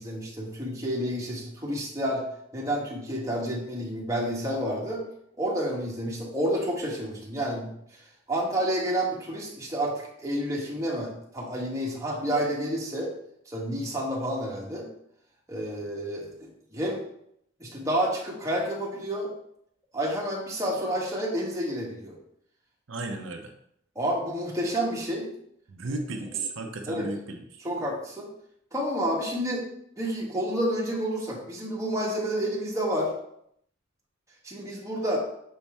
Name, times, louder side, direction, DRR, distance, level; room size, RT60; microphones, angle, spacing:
voice 1, 0.0-2.2 2.5-5.0 5.4-7.7 8.3-13.1 13.5-14.9 15.5-17.0 17.6-19.3 19.9-22.1 23.9-25.3 26.9-27.1 27.6-28.3 28.7-29.6 30.0-33.1 34.4-35.2, equal, 15° right, -4 dB, 1.4 m, -29 dB
voice 2, 22.9-23.5 25.7-27.7, right 3 dB, 85° right, 4 dB, 0.7 m, -34 dB
6.3 x 4.2 x 3.5 m, 0.71 s
head